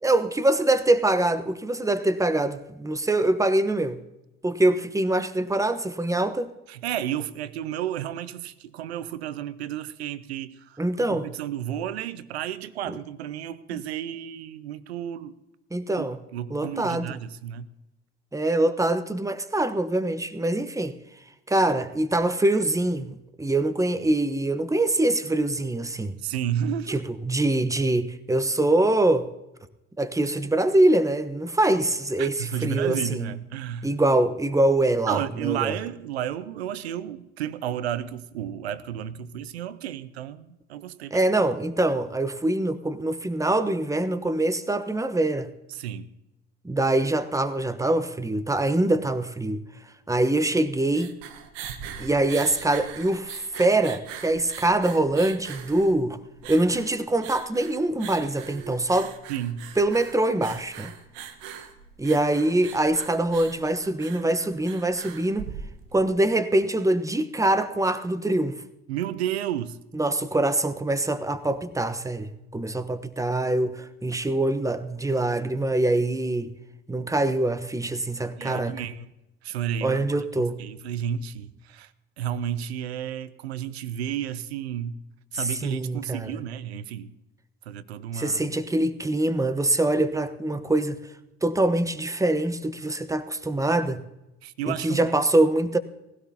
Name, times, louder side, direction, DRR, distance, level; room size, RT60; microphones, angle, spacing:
voice 1, 0.0-4.0 4.4-6.5 10.8-11.3 12.9-13.0 15.7-16.2 16.5-17.2 18.3-20.9 21.5-26.2 26.9-29.3 30.0-33.3 33.8-35.7 41.1-45.5 46.6-49.6 50.1-51.1 52.0-56.2 56.5-59.1 59.8-60.9 62.0-65.5 65.9-68.6 69.9-76.5 76.9-78.8 79.8-80.6 85.3-86.4 88.1-91.0 91.4-94.0 94.7-95.8, right 2 dB, 10° right, 1.1 m, -24 dB
voice 2, 6.7-10.8 11.1-15.4 16.0-17.7 26.2-27.0 31.6-31.7 32.2-33.9 35.1-41.2 45.7-46.1 59.3-59.7 68.9-69.8 78.4-79.1 79.4-81.9 82.2-85.0 85.3-87.1 87.7-88.4 94.4-95.2, right 10 dB, 90° right, 0.7 m, -32 dB
sound 1, 50.6-66.1, right 8 dB, 75° right, 1.2 m, -41 dB
19.0 x 16.5 x 2.9 m
hypercardioid pair, 60°, 31 cm